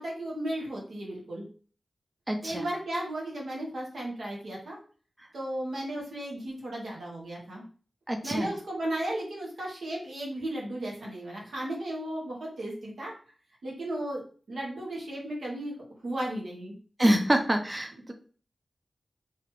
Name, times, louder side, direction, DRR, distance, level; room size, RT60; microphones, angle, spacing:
voice 1, 0.0-1.5 2.4-4.8 5.3-7.6 8.2-13.1 13.6-14.2 14.5-15.7 16.0-16.7, right 1 dB, 80° right, -3 dB, 1.1 m, -35 dB
voice 2, 2.3-2.7 8.1-8.5 17.0-18.1, right 1 dB, 25° right, 5 dB, 0.5 m, -26 dB
2.9 x 2.4 x 2.9 m, 0.41 s
cardioid pair, 40°, 0 cm